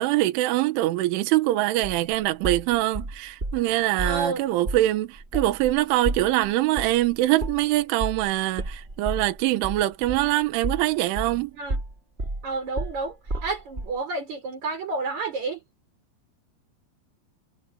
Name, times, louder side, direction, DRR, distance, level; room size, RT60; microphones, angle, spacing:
voice 1, 0.0-11.5, right 16 dB, 75° right, 3.6 m, -23 dB
sound 1, 1.8-3.6 4.0-4.3 4.6-4.9 5.2-11.4 11.7-14.0, right 2 dB, 15° right, 2.8 m, -32 dB
voice 2, 4.0-4.4 11.5-11.8 12.4-15.6, right 3 dB, 35° right, 6.3 m, -30 dB
omnidirectional pair, 5.8 m